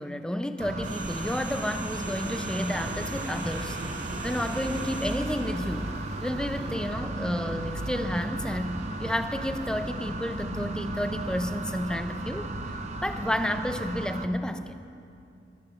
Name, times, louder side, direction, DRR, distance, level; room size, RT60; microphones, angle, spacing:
voice 1, 0.0-3.8 4.2-6.0 6.2-12.5 13.0-14.8, left 1 dB, 5° left, 8 dB, 0.6 m, -31 dB
sound 1, 0.6-14.3, right 2 dB, 40° right, 0.8 m, -36 dB
sound 2, 0.8-7.1 7.4-7.6, right 3 dB, 90° right, 3.5 m, -40 dB
sound 3, 2.0-13.5, right 1 dB, 65° right, 2.0 m, -41 dB
16.0 x 12.0 x 6.9 m, 2.7 s
head